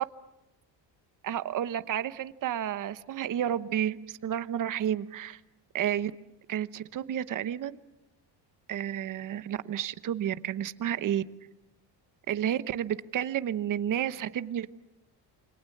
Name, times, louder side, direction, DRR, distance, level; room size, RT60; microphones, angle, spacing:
voice 1, 1.2-5.4 5.7-6.1 6.5-7.8 8.7-11.2 12.3-14.7, right 10 dB, 45° right, 13 dB, 1.0 m, -31 dB
28.5 x 26.0 x 7.3 m, 0.91 s
cardioid pair, 155°, 43 cm